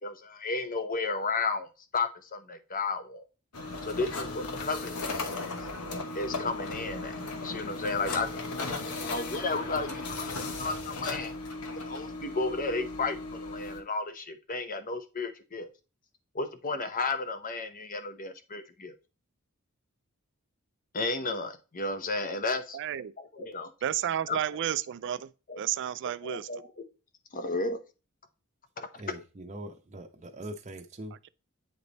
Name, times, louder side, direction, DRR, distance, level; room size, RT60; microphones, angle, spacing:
voice 1, 0.0-3.2 3.8-5.7 6.1-8.3 8.5-11.3 11.9-15.7 16.3-18.9 20.9-22.8 23.2-23.7 24.3-24.4 25.5-25.6 26.2-26.7 27.3-27.8 28.8-28.9, left 3 dB, 40° left, 0.8 m, -33 dB
sound 1, 3.5-13.8, left 3 dB, 90° left, 1.1 m, -36 dB
voice 2, 22.7-23.1 23.8-25.3 25.6-26.5, right 10 dB, 55° right, 0.4 m, -31 dB
voice 3, 29.0-31.1, right 1 dB, 35° right, 0.7 m, -42 dB
8.7 x 3.3 x 4.0 m
head